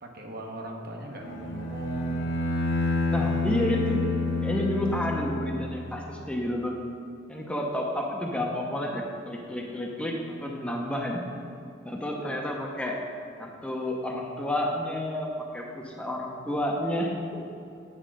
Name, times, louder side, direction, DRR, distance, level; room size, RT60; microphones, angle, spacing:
voice 1, 0.0-2.5, right 1 dB, 55° right, 1 dB, 1.0 m, -39 dB
Bowed string instrument, 1.2-6.0, left 2 dB, 80° left, 0.8 m, -29 dB
voice 2, 3.1-4.0 4.4-6.7 7.3-11.2 11.8-13.0 13.4-17.4, left 1 dB, 5° left, -1 dB, 0.7 m, -30 dB
8.4 x 4.5 x 6.2 m, 2.6 s
head